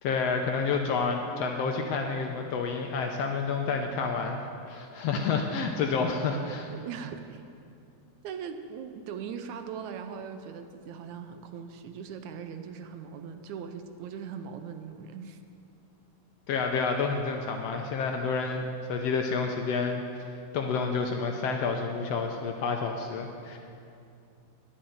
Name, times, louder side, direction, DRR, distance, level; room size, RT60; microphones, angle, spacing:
voice 1, 0.0-4.4 4.7-6.7 16.5-20.0 20.5-23.6, left 4 dB, 75° left, 3 dB, 1.6 m, -29 dB
voice 2, 6.7-7.4 8.2-15.4, right 7 dB, 80° right, 7 dB, 2.0 m, -40 dB
10.5 x 10.0 x 7.8 m, 2.5 s
omnidirectional pair, 3.4 m